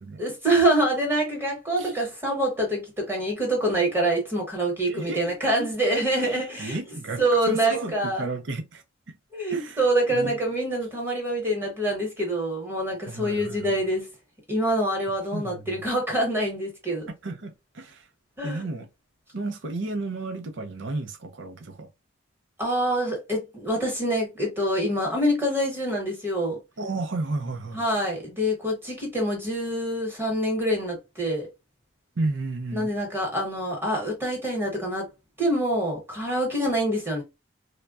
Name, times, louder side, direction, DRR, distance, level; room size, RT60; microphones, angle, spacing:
voice 1, 0.2-6.8 7.2-8.3 9.3-14.1 14.5-17.1 18.4-18.6 22.6-26.6 27.7-31.5 32.7-35.1 35.4-37.2, right 1 dB, 10° right, 1.1 m, -25 dB
voice 2, 4.9-5.2 6.2-8.8 9.5-9.8 10.1-10.3 13.1-13.8 15.3-15.8 17.2-18.1 18.4-18.9 19.3-21.9 26.8-27.8 32.2-32.9, right 2 dB, 60° right, 0.5 m, -32 dB
3.2 x 2.2 x 2.3 m
head